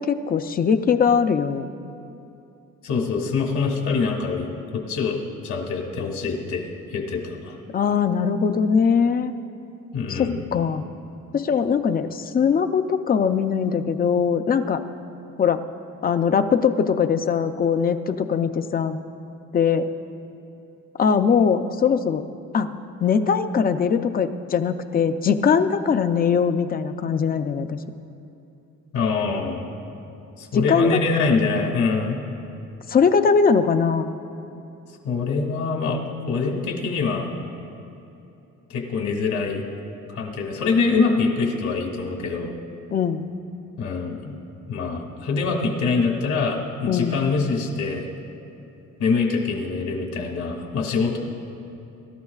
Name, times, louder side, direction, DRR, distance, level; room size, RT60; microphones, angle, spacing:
voice 1, 0.0-1.7 7.7-9.3 10.1-10.8 11.3-14.8 15.4-15.6 16.0-19.0 19.5-19.9 21.0-22.2 22.5-22.7 23.0-27.8 30.5-30.9 32.9-34.1 42.9-43.3 46.9-47.2, left 6 dB, 30° left, 9 dB, 0.5 m, -21 dB
voice 2, 2.8-5.2 5.4-6.6 6.9-7.6 9.9-10.4 28.9-29.7 30.4-32.2 35.0-36.0 36.3-37.3 38.7-39.6 40.1-42.5 43.8-44.3 44.7-48.1 49.0-51.2, left 4 dB, 70° left, 0 dB, 2.3 m, -24 dB
23.5 x 13.0 x 2.4 m, 2.9 s
cardioid pair, 145°, 30 cm